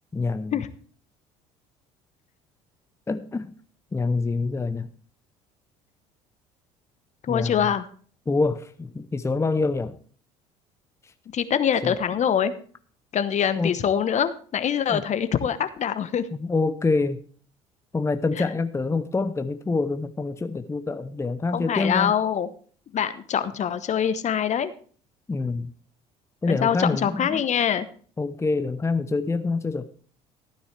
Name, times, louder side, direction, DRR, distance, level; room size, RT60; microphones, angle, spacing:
voice 1, 0.1-0.7 3.1-3.5 3.9-4.9 7.3-7.7 8.3-9.9 11.8-12.2 13.6-13.7 14.9-15.0 16.3-17.2 17.9-22.1 25.3-25.7 26.4-27.4 28.2-29.9, left 3 dB, 15° left, 10 dB, 0.8 m, -26 dB
voice 2, 7.3-7.9 11.3-12.5 13.1-16.2 21.5-22.5 22.9-24.7 26.5-27.9, left 8 dB, 45° left, 13 dB, 1.1 m, -24 dB
14.5 x 9.5 x 3.4 m, 0.44 s
hypercardioid pair, 65°, 17 cm